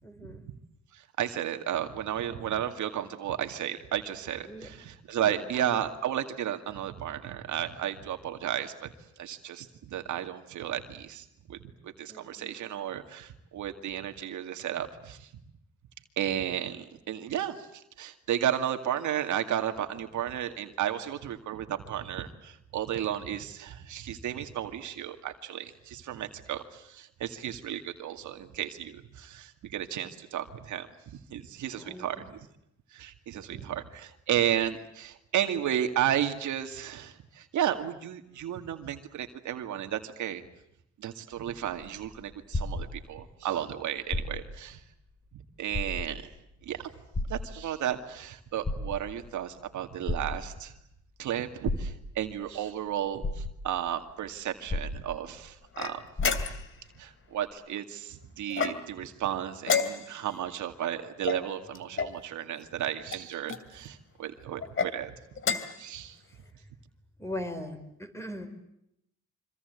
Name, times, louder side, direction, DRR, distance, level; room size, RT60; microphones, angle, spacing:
voice 1, 0.0-0.4 4.5-4.7 5.2-5.4 12.1-12.5 31.7-32.3 33.5-33.7 67.2-68.5, left 1 dB, 10° left, 8 dB, 5.1 m, -40 dB
voice 2, 0.9-8.9 9.2-15.3 16.2-30.9 31.3-32.5 32.9-40.4 41.0-44.8 45.3-46.2 46.6-46.9 47.3-50.7 51.2-56.0 57.0-65.1 65.8-66.2, right 10 dB, 75° right, 6 dB, 2.3 m, -33 dB
sound 1, 41.3-43.4 44.0-44.7 45.1-45.2 45.7-46.4 47.1-48.0 48.5-49.3 50.1-50.8 51.6-52.3 52.9-53.0 53.2-53.9 54.7-55.5 55.8-55.9 56.2-56.8 57.5-57.6, left 2 dB, 25° left, 5.7 m, -34 dB
sound 2, 55.7-56.8 58.5-59.1 59.6-60.3 61.2-62.2 63.1-63.6 64.6-64.9 65.4-65.8, left 6 dB, 45° left, 2.7 m, -31 dB
26.0 x 25.5 x 8.2 m, 0.79 s
cardioid pair, 90°, 30 cm